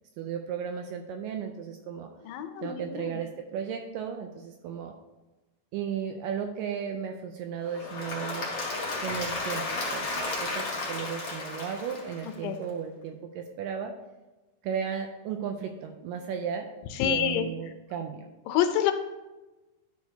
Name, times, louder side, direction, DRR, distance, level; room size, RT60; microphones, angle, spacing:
voice 1, 0.2-2.1 2.6-4.9 5.7-8.5 9.0-14.0 14.6-16.7 17.0-18.3, right 7 dB, 85° right, 4 dB, 2.0 m, -35 dB
voice 2, 2.2-3.2 12.2-12.6 16.9-17.5 18.5-18.9, left 10 dB, 80° left, 8 dB, 2.3 m, -27 dB
Applause / Crowd, 7.6-12.6, left 3 dB, 40° left, 2.3 m, -33 dB
11.5 x 6.2 x 2.8 m, 1.1 s
omnidirectional pair, 4.3 m